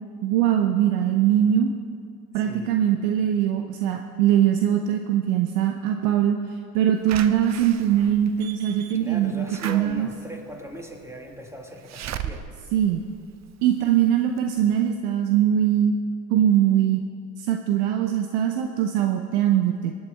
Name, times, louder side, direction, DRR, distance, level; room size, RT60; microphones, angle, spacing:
voice 1, 0.2-1.7 2.3-6.4 6.7-10.1 12.7-13.0 13.6-15.9 16.3-17.0 17.4-19.9, right 10 dB, 70° right, 5 dB, 0.9 m, -21 dB
voice 2, 2.3-2.8 9.0-12.5, equal, 5° right, 3 dB, 1.9 m, -39 dB
Slam / Alarm, 7.1-13.9 14.4-14.5 14.7-14.8, right 9 dB, 35° right, 0.7 m, -38 dB
20.5 x 8.8 x 4.5 m, 2.3 s
hypercardioid pair, 75°, 46 cm